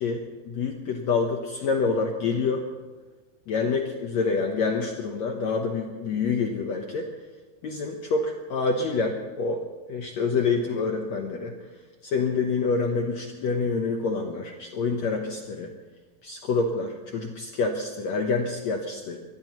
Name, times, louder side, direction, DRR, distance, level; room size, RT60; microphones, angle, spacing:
voice 1, 0.0-2.6 3.5-7.1 7.6-9.6 9.9-11.5 12.1-15.7 16.2-19.2, left 4 dB, 75° left, 2 dB, 1.6 m, -27 dB
23.5 x 20.0 x 3.1 m, 1.2 s
omnidirectional pair, 4.6 m